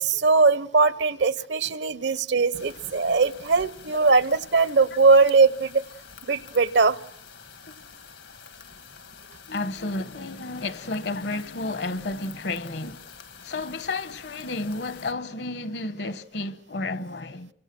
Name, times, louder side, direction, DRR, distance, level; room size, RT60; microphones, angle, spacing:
voice 1, 0.0-5.8 6.3-7.0, right 4 dB, 75° right, 0.9 m, -20 dB
sound 1, 2.5-15.1, left 6 dB, 85° left, 2.0 m, -47 dB
voice 2, 9.5-13.1 13.4-17.5, left 2 dB, 65° left, 1.1 m, -32 dB
29.5 x 25.0 x 6.1 m
head